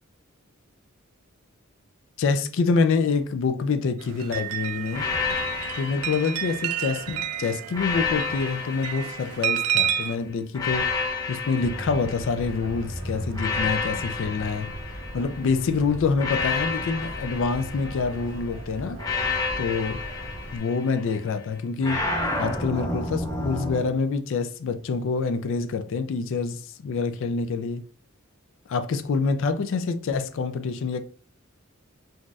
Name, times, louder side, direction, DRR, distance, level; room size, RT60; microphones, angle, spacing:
voice 1, 2.2-5.1 5.8-11.0 11.3-14.7 15.1-19.0 19.6-20.0 20.5-22.1 22.4-27.8 28.7-31.0, left 4 dB, 65° left, 0.4 m, -26 dB
sound 1, 4.0-10.1, right 10 dB, 85° right, 0.3 m, -30 dB
sound 2, 4.9-7.1 7.7-9.9 10.5-12.7 13.3-15.5 16.2-18.3 19.0-21.2 21.8-23.9, left 4 dB, 20° left, 0.7 m, -30 dB
sound 3, 11.6-20.6, equal, 65° right, 0.9 m, -37 dB
3.9 x 2.5 x 2.3 m
head